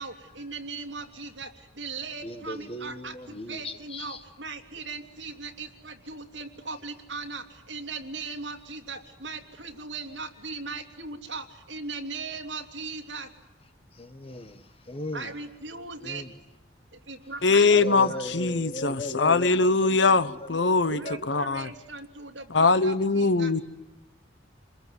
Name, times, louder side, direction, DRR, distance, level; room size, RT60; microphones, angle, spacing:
voice 1, 0.0-13.3 15.1-16.2 17.1-18.3 20.9-23.6, right 3 dB, 70° right, 3.0 m, -38 dB
voice 2, 2.2-4.2 13.9-15.4 16.0-16.3 17.7-21.5, left 1 dB, 30° left, 1.3 m, -38 dB
voice 3, 17.4-21.7 22.5-23.6, left 3 dB, 70° left, 1.1 m, -22 dB
28.5 x 21.5 x 9.6 m
head